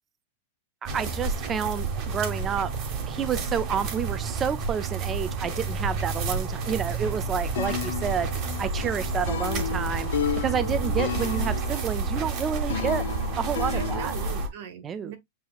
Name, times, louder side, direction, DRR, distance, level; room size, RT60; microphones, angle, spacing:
sound 1, 0.8-14.5, right 4 dB, 35° right, 1.1 m, -30 dB
voice 1, 0.9-2.7 3.1-8.3 8.6-10.1 10.4-13.0 13.4-14.1 14.8-15.1, right 7 dB, 20° right, 0.4 m, -29 dB
sound 2, 7.6-14.4, left 10 dB, 80° left, 0.5 m, -33 dB
voice 2, 13.6-15.2, right 8 dB, 60° right, 1.6 m, -41 dB
7.5 x 2.8 x 2.4 m
supercardioid pair, 160°, 0 cm